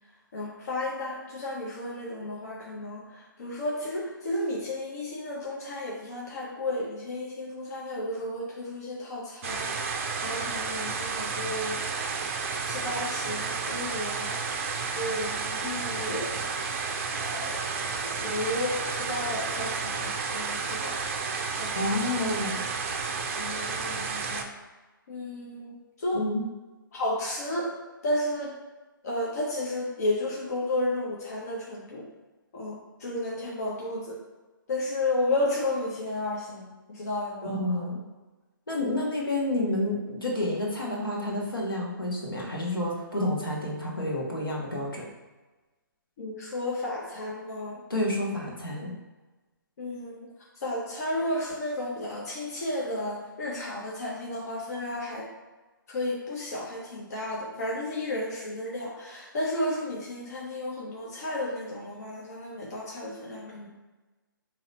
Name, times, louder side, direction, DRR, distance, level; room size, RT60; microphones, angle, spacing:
voice 1, 0.3-9.7 10.2-11.8 12.6-14.3 14.9-16.5 17.2-17.6 18.0-21.0 21.6-21.7 22.2-22.3 23.4-24.5 25.1-25.7 26.0-26.2 26.9-27.7 28.0-28.5 29.0-32.0 32.5-34.2 34.7-37.8 46.2-47.8 49.8-50.3 50.6-55.3 55.9-63.7, left 1 dB, 45° left, -4 dB, 1.0 m, -32 dB
sound 1, 9.4-24.4, right 5 dB, 40° right, 0.4 m, -31 dB
voice 2, 21.7-22.6 26.1-26.5 37.4-38.0 38.7-45.0 47.9-48.9, left 1 dB, 75° left, -3 dB, 1.3 m, -29 dB
3.9 x 2.9 x 4.1 m, 1.2 s
figure-of-eight pair, 135°, 12 cm